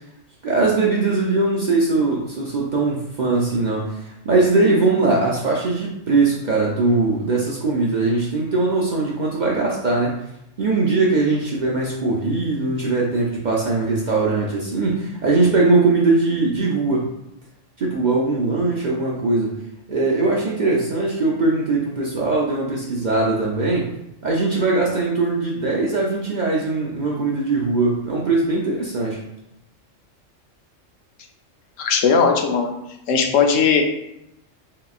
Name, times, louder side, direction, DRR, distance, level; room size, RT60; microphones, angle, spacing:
voice 1, 0.4-10.2 10.6-17.1 17.8-19.5 19.9-23.9 24.2-29.2, right 3 dB, 50° right, -4 dB, 0.5 m, -20 dB
voice 2, 31.8-32.7 33.1-33.8, left 6 dB, 80° left, 3 dB, 1.0 m, -18 dB
3.8 x 3.6 x 2.4 m, 0.84 s
omnidirectional pair, 1.3 m